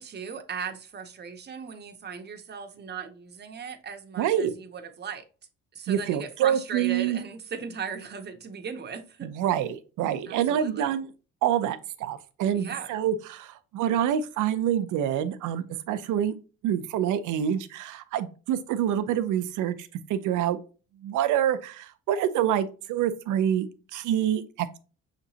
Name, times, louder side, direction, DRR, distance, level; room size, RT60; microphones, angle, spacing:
voice 1, 0.0-5.2 5.7-9.3 10.3-10.9 12.5-12.9, right 6 dB, 35° right, 0.7 m, -38 dB
voice 2, 4.2-4.5 5.9-7.2 9.2-11.1 11.4-16.4 16.6-20.6 21.0-24.8, right 10 dB, 85° right, 0.5 m, -27 dB
5.9 x 2.9 x 2.7 m
cardioid pair, 90°, 30 cm